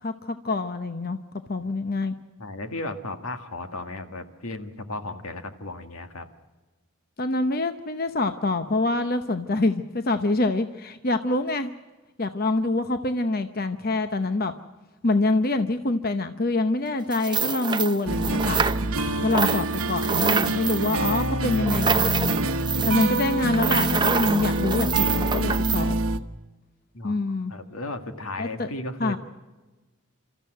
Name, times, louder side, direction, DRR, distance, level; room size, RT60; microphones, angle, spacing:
voice 1, 0.0-1.2 1.5-2.1 7.2-11.7 12.2-14.5 15.0-18.6 19.2-22.3 22.8-26.0 27.0-27.5 28.4-28.7 29.0-29.2, left 2 dB, 40° left, 8 dB, 0.8 m, -25 dB
voice 2, 2.4-6.3 26.9-27.2 27.5-29.2, left 2 dB, 80° left, 7 dB, 1.8 m, -35 dB
sound 1, 17.1-19.1 19.3-25.8, right 5 dB, 20° right, 0.6 m, -26 dB
sound 2, 18.1-26.2, right 2 dB, 75° right, 1.0 m, -26 dB
28.5 x 14.0 x 7.8 m, 1.2 s
head